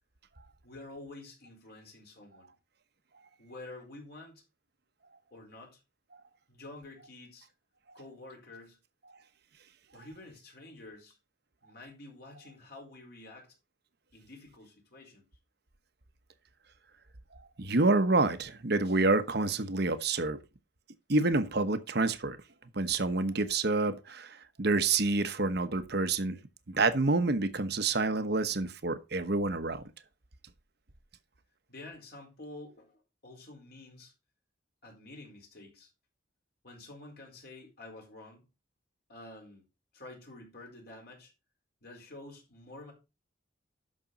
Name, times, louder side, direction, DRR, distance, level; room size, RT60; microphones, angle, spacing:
voice 1, 0.6-2.5 3.4-4.4 5.3-5.8 6.5-7.5 7.9-8.8 9.9-11.2 11.6-13.5 14.1-15.3 31.7-34.1 34.8-35.9 36.6-38.5 39.1-39.7 39.9-41.3 41.8-42.9, left 2 dB, 55° left, 4.4 m, -49 dB
voice 2, 17.6-20.4 21.1-22.4 22.7-26.4 26.7-29.8, right 3 dB, 55° right, 1.1 m, -28 dB
12.0 x 6.2 x 4.1 m
head